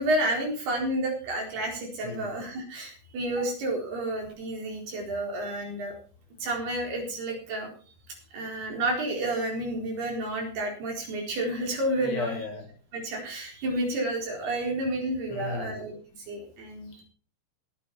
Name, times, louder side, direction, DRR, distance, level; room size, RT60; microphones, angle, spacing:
voice 1, 0.0-5.9 6.4-7.7 8.3-12.4 12.9-16.0 16.3-17.0, right 1 dB, 55° right, 0 dB, 6.0 m, -30 dB
voice 2, 12.0-12.7 15.3-15.8, left 3 dB, 70° left, 2 dB, 5.6 m, -34 dB
21.0 x 8.7 x 4.3 m, 0.41 s
omnidirectional pair, 5.7 m